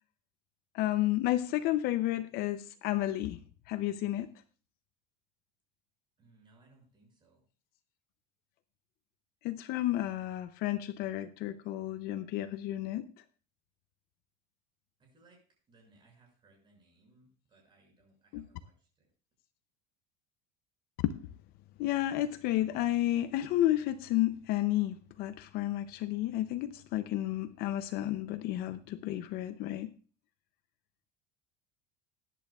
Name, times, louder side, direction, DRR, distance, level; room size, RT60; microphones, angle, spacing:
voice 1, 0.7-3.4 3.7-4.3 9.4-13.1 18.3-18.5 21.0-21.1 21.8-29.9, left 14 dB, 45° left, 11 dB, 0.6 m, -31 dB
voice 2, 6.2-7.4 15.0-15.4 15.7-19.1, right 3 dB, 25° right, 0 dB, 6.2 m, -64 dB
20.5 x 10.5 x 2.4 m, 0.38 s
cardioid pair, 160°, 21 cm